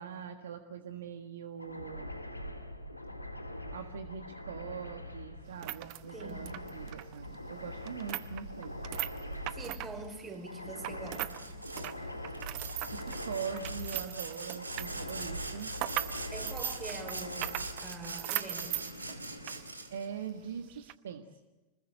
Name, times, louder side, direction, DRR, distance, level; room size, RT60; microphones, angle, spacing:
voice 1, 0.0-2.1 3.7-8.8 12.9-15.7 19.9-21.2, right 7 dB, 65° right, 7 dB, 1.5 m, -42 dB
sound 1, 1.6-20.4, left 1 dB, 85° left, 2.1 m, -43 dB
sound 2, 5.4-11.4 11.7-19.6 19.9-20.0 20.7-20.9, right 18 dB, 45° right, 0.9 m, -39 dB
voice 2, 6.1-6.5 9.5-11.5 16.3-19.0, right 3 dB, 20° right, 5 dB, 5.3 m, -44 dB
Sawing, 11.3-11.9 12.3-20.1, right 3 dB, 80° right, 2.4 m, -43 dB
25.5 x 21.0 x 7.9 m, 1.1 s
figure-of-eight pair, 90°, 0 cm